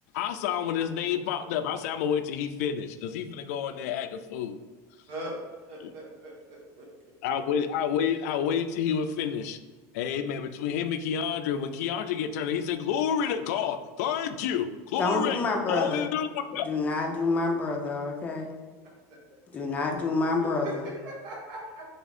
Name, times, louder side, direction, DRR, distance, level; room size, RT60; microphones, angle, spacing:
voice 1, 0.1-4.6 5.8-5.9 7.2-9.6 9.9-16.6, left 8 dB, 80° left, 9 dB, 0.4 m, -29 dB
voice 2, 5.7-6.9 20.4-21.9, equal, 60° right, -3 dB, 1.4 m, -40 dB
voice 3, 14.9-16.1 16.6-18.5 19.5-20.9, left 3 dB, 20° left, 1 dB, 0.5 m, -28 dB
3.5 x 3.4 x 4.1 m, 1.4 s
cardioid pair, 175°, 8 cm